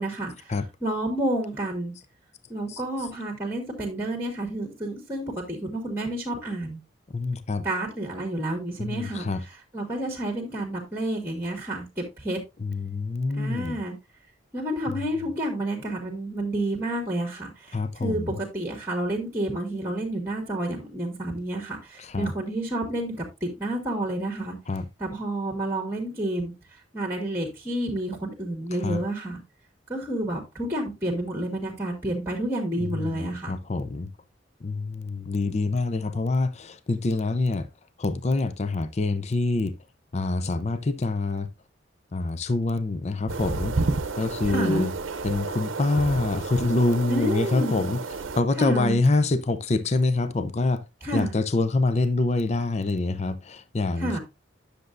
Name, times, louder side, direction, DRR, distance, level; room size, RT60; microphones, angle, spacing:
voice 1, 0.0-0.5 0.8-1.9 2.5-6.8 7.6-9.3 9.7-12.4 13.3-13.9 14.5-24.6 25.0-26.5 26.9-29.4 29.9-33.6 44.5-44.9 47.1-47.8 48.6-49.0 51.0-51.4 54.0-54.2, right 1 dB, 10° right, 1.6 m, -30 dB
voice 2, 7.1-7.7 8.8-9.4 12.6-13.8 14.9-15.0 17.7-18.4 22.0-22.3 24.7-24.9 28.7-29.0 32.8-34.1 34.6-37.7 38.0-39.8 40.1-41.5 42.1-43.8 44.2-44.9 45.2-48.0 48.4-50.8 51.1-54.2, left 2 dB, 35° left, 0.5 m, -26 dB
sound 1, 43.3-48.4, right 3 dB, 85° right, 0.7 m, -31 dB
10.0 x 6.7 x 2.5 m
head